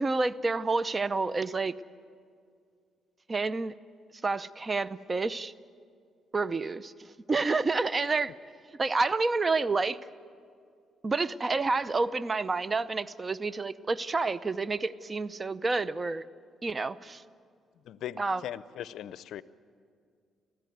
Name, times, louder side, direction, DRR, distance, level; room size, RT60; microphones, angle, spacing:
voice 1, 0.0-1.7 3.3-3.7 4.2-5.5 6.3-8.3 8.8-10.0 11.0-16.2 16.6-17.2 18.2-18.4, right 3 dB, 30° right, 16 dB, 0.7 m, -29 dB
voice 2, 17.8-19.4, left 11 dB, 75° left, 16 dB, 0.6 m, -39 dB
25.5 x 16.0 x 9.4 m, 2.3 s
cardioid pair, 90°, 0 cm